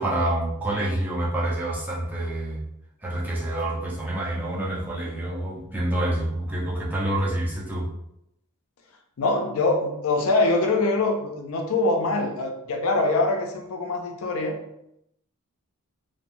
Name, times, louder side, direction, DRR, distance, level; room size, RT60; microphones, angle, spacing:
voice 1, 0.0-2.6 3.0-7.9, right 1 dB, 10° right, -5 dB, 0.5 m, -27 dB
voice 2, 9.2-14.6, left 2 dB, 70° left, 3 dB, 0.4 m, -24 dB
3.0 x 2.0 x 2.5 m, 0.79 s
head